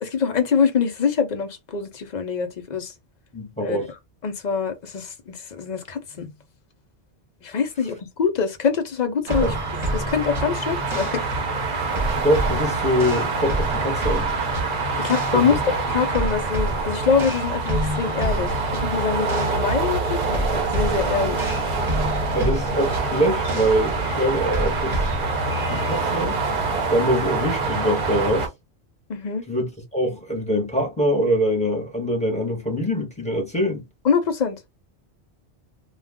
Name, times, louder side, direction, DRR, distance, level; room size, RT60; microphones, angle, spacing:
voice 1, 0.0-2.9 3.6-3.8 4.2-6.3 7.4-9.5 9.9-11.2 15.0-15.5 15.9-21.5 29.1-29.4 34.0-34.6, left 6 dB, 50° left, 0.6 m, -24 dB
voice 2, 3.3-3.9 9.4-9.6 12.1-14.3 15.3-15.6 16.2-16.3 22.3-25.0 25.7-26.4 26.9-28.5 29.5-33.8, equal, 5° left, 1.0 m, -24 dB
sound 1, 9.3-26.0, equal, 30° right, 1.0 m, -30 dB
sound 2, 9.3-28.5, right 3 dB, 50° right, 0.8 m, -26 dB
2.3 x 2.3 x 3.5 m
omnidirectional pair, 1.2 m